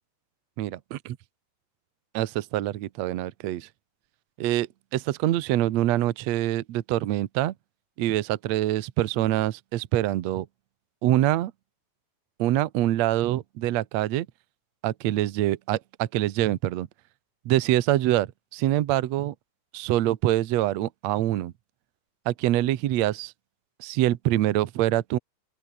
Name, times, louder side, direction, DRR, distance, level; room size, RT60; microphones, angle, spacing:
voice 1, 0.6-1.2 2.1-3.7 4.4-7.5 8.0-10.5 11.0-11.5 12.4-14.3 14.8-16.9 17.4-19.3 19.7-21.5 22.2-23.3 23.8-25.2, right 14 dB, 85° right, 1.5 m, -25 dB
open air
omnidirectional pair, 4.7 m